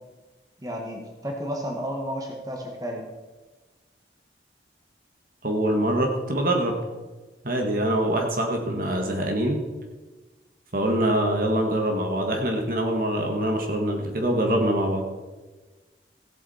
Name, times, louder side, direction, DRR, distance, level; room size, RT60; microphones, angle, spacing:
voice 1, 0.6-3.1, equal, 20° right, 1 dB, 1.7 m, -32 dB
voice 2, 5.4-6.7 7.4-9.6 10.7-15.0, right 1 dB, 50° right, 2 dB, 1.7 m, -24 dB
16.0 x 8.5 x 4.3 m, 1.2 s
head